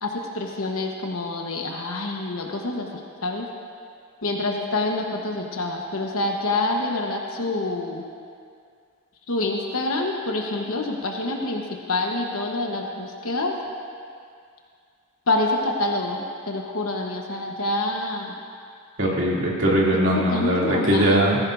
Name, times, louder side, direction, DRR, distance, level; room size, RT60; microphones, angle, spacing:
voice 1, 0.0-3.5 4.2-8.0 9.3-13.6 15.3-18.3 20.1-21.2, left 2 dB, 75° left, 1 dB, 1.1 m, -27 dB
voice 2, 19.0-21.4, right 1 dB, 55° right, -4 dB, 2.7 m, -20 dB
19.0 x 15.5 x 2.6 m, 2.3 s
head